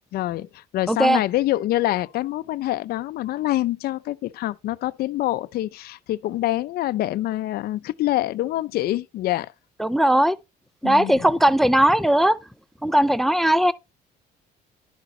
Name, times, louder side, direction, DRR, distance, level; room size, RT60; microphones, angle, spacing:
voice 1, 0.1-9.5 10.8-11.2, left 15 dB, 65° left, 0.5 m, -26 dB
voice 2, 0.9-1.2 9.8-10.4 10.8-12.4 12.8-13.7, right 1 dB, ahead, 0.5 m, -18 dB
11.0 x 4.8 x 4.2 m
cardioid pair, 110°, 17 cm